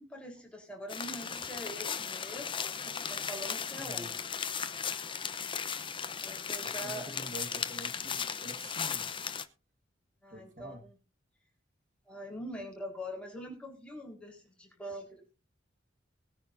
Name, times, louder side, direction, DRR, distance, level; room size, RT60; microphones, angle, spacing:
voice 1, 0.0-4.1 6.2-7.1 10.2-10.9 12.1-15.2, equal, 5° left, 0 dB, 4.2 m, -44 dB
sound 1, 0.9-9.5, left 7 dB, 25° left, 0.8 m, -36 dB
voice 2, 3.7-4.2 6.6-9.1 10.3-10.8, right 1 dB, 45° right, 4 dB, 1.7 m, -47 dB
20.5 x 10.0 x 2.7 m, 0.32 s
head